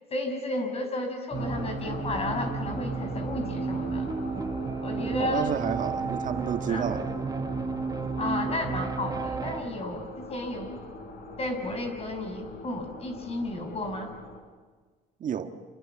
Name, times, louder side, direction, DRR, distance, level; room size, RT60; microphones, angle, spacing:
voice 1, 0.0-4.1 4.8-5.5 6.7-6.9 8.2-10.8 11.4-14.1, left 2 dB, 35° left, 7 dB, 6.1 m, -33 dB
sound 1, 1.3-14.4, left 2 dB, 65° left, 6.0 m, -42 dB
sound 2, 1.3-9.6, right 4 dB, 20° right, 1.6 m, -32 dB
voice 2, 5.0-7.1 15.2-15.5, right 8 dB, 50° right, 6 dB, 1.7 m, -30 dB
27.5 x 27.5 x 7.3 m, 1.4 s
cardioid pair, 110°, 17 cm